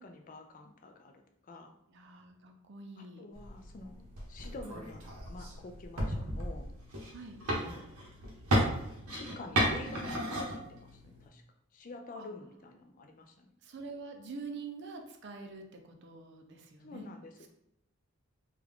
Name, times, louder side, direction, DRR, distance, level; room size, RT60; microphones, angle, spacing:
voice 1, 0.0-1.7 3.0-5.0 5.3-6.7 7.5-7.9 9.1-11.4 11.7-13.5 16.8-17.5, left 2 dB, 35° left, 5 dB, 0.3 m, -48 dB
voice 2, 1.9-3.2 7.1-7.4 12.2-12.3 13.6-17.1, right 4 dB, 50° right, 5 dB, 0.5 m, -45 dB
sound 1, 3.3-11.3, right 1 dB, 90° right, 0.9 m, -35 dB
3.4 x 2.3 x 3.5 m, 0.76 s
head